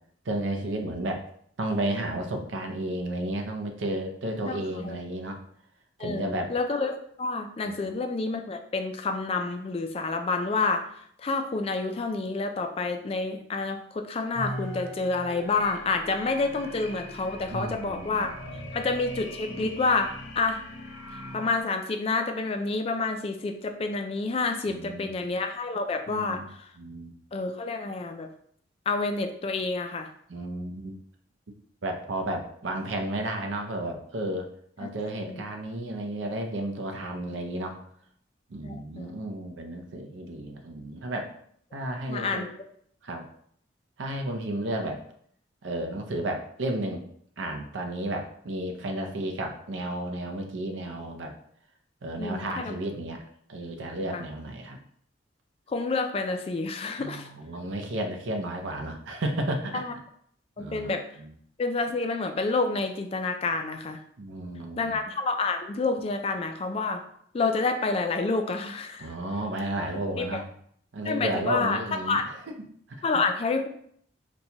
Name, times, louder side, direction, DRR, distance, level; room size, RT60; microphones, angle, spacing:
voice 1, 0.2-1.2 1.6-5.4 6.0-6.5 7.7-7.9 17.5-18.7 24.6-25.2 26.1-26.5 26.8-27.1 30.3-31.0 31.8-34.5 34.8-37.7 38.5-41.3 41.7-42.5 43.0-43.2 44.0-45.0 45.6-47.0 47.4-51.3 52.0-53.2 53.5-54.8 57.0-59.8 60.6-60.9 61.2-61.3 64.2-64.9 69.0-70.5 70.9-72.2 72.9-73.0, right 1 dB, 80° right, 3 dB, 0.6 m, -32 dB
voice 2, 4.5-5.0 6.0-18.3 18.7-20.6 21.1-26.4 27.3-28.3 28.9-30.1 34.8-34.9 35.3-35.4 38.6-39.1 42.1-42.5 52.2-52.8 54.1-54.2 55.7-57.3 59.7-59.9 60.6-61.1 61.6-64.0 64.8-67.0 67.3-69.2 70.2-70.4 71.0-71.8 72.1-72.2 73.0-73.7, left 3 dB, 30° left, 6 dB, 0.3 m, -29 dB
sound 1, 14.3-21.6, equal, 75° left, 0.6 m, -40 dB
4.1 x 2.2 x 2.8 m, 0.64 s
head